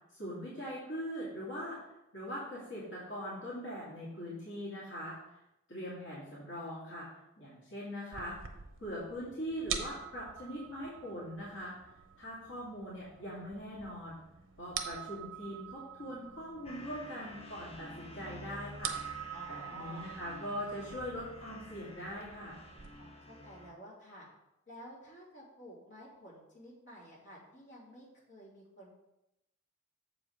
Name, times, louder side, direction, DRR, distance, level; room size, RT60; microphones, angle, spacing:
voice 1, 0.1-1.8 2.1-5.2 5.7-7.1 7.4-8.4 8.8-11.7 12.2-14.2 14.6-22.6, equal, 70° left, -8 dB, 2.4 m, -41 dB
sound 1, 8.1-22.9, right 8 dB, 75° right, 0.8 m, -46 dB
sound 2, 16.6-23.7, left 1 dB, 30° left, 0.7 m, -50 dB
voice 2, 19.3-20.1 23.0-24.3 24.7-28.9, equal, 55° left, -6 dB, 2.9 m, -52 dB
7.2 x 5.1 x 5.0 m, 0.89 s
head